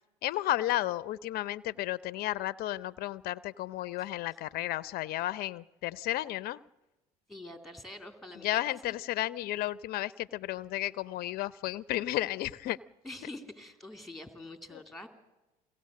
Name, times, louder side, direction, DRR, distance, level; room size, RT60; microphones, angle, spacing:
voice 1, 0.2-6.6 8.4-12.8 14.7-14.8, left 15 dB, 60° left, 19 dB, 0.6 m, -33 dB
voice 2, 7.3-8.9 13.0-15.1, left 1 dB, ahead, 7 dB, 3.1 m, -45 dB
23.0 x 17.0 x 7.6 m, 1.0 s
hypercardioid pair, 75°, 18 cm